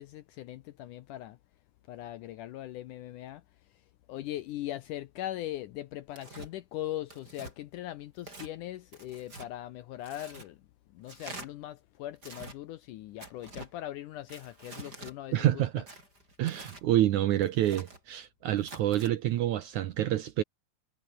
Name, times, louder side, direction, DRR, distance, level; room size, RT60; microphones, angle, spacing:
voice 1, 0.0-1.4 1.9-3.4 4.1-10.6 10.9-15.9, left 14 dB, 75° left, 1.9 m, -40 dB
Tearing, 6.1-6.5 7.1-7.5 8.2-8.5 8.9-9.5 10.0-10.5 11.1-11.5 12.2-12.6 13.2-13.7 14.3-15.1 15.9-16.8 17.4-18.0 18.6-19.1, right 2 dB, 25° right, 6.8 m, -46 dB
voice 2, 15.3-15.9 16.4-20.4, right 13 dB, 70° right, 1.9 m, -27 dB
omnidirectional pair, 4.4 m